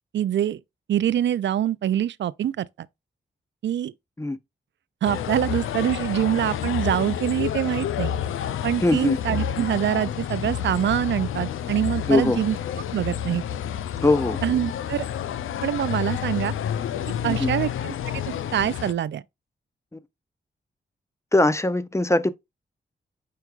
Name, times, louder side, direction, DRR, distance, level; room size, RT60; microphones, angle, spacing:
voice 1, 0.1-0.6 0.9-2.9 3.6-3.9 5.0-8.1 8.6-12.6 12.9-13.4 14.4-15.1 15.6-16.5 17.2-17.9 18.3-19.2, right 11 dB, 65° right, 0.4 m, -25 dB
sound 1, 5.0-18.9, left 9 dB, 80° left, 0.4 m, -29 dB
voice 2, 8.8-9.2 12.1-12.4 14.0-14.4 17.3-17.5 19.9-20.0 21.3-22.3, left 2 dB, 15° left, 0.6 m, -21 dB
4.6 x 4.5 x 2.3 m
supercardioid pair, 40°, 21 cm